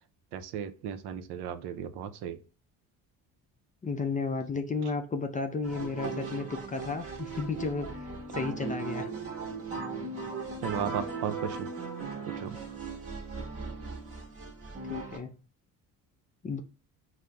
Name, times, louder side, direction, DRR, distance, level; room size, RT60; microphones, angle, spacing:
voice 1, 0.3-2.4 10.6-11.7 12.3-12.6, right 9 dB, 75° right, 9 dB, 0.6 m, -35 dB
voice 2, 3.8-9.1 14.9-15.4 16.4-16.6, left 4 dB, 20° left, 5 dB, 0.4 m, -33 dB
sound 1, 5.6-15.2, right 4 dB, 35° right, 1.2 m, -38 dB
5.3 x 2.0 x 2.2 m, 0.36 s
cardioid pair, 105°, 39 cm